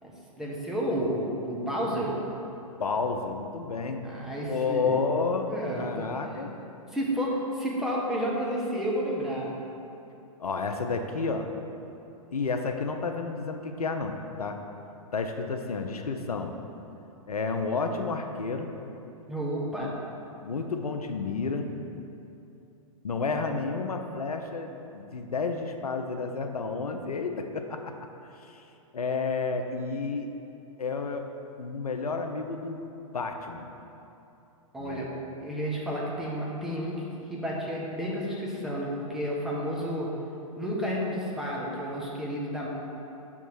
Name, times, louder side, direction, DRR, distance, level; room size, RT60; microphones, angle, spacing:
voice 1, 0.0-2.2 4.0-5.0 5.5-6.5 6.8-9.6 19.3-19.9 34.7-35.1 35.4-37.0 37.3-40.1 40.6-42.7, equal, ahead, -5 dB, 1.1 m, -31 dB
voice 2, 2.8-4.0 4.5-6.5 10.4-11.5 12.3-14.6 15.1-16.5 17.3-18.7 19.8-20.0 20.4-21.7 23.0-27.9 28.3-28.6 28.9-30.3 30.8-31.3 31.6-32.8 33.1-33.7 34.8-35.1, left 4 dB, 90° left, 5 dB, 0.6 m, -31 dB
6.2 x 3.6 x 6.1 m, 2.9 s
hypercardioid pair, 115°, 19 cm